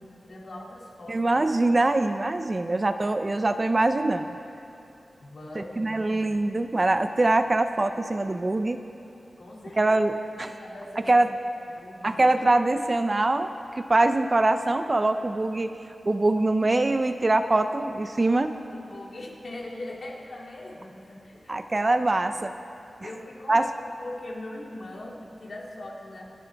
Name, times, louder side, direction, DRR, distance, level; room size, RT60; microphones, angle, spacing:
voice 1, 0.0-1.2 5.2-6.3 9.4-10.0 10.3-11.1 11.7-12.2 18.7-21.9 23.0-26.3, left 1 dB, 60° left, -2 dB, 2.3 m, -41 dB
voice 2, 1.1-4.3 5.6-8.8 9.8-10.5 11.1-11.3 12.0-13.5 13.7-15.8 16.1-18.6 21.5-22.5 23.5-23.7, right 2 dB, 30° right, 9 dB, 0.5 m, -23 dB
28.5 x 9.9 x 3.4 m, 2.8 s
wide cardioid pair, 125°, 0 cm